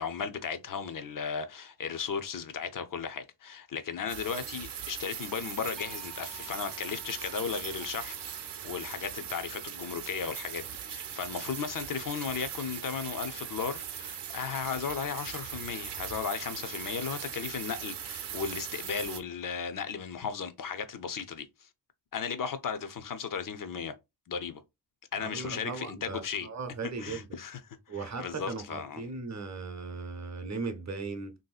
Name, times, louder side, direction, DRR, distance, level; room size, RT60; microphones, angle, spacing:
voice 1, 0.0-21.7 22.1-23.9 24.3-24.6 25.1-26.5 27.0-29.1, left 6 dB, 50° left, 0.5 m, -36 dB
sound 1, 4.1-19.2, right 9 dB, 80° right, 0.6 m, -40 dB
sound 2, 5.8-11.8, equal, ahead, 0.4 m, -57 dB
voice 2, 25.2-27.3 27.9-31.4, right 4 dB, 40° right, 0.6 m, -37 dB
3.3 x 2.7 x 2.3 m
wide cardioid pair, 160°, 41 cm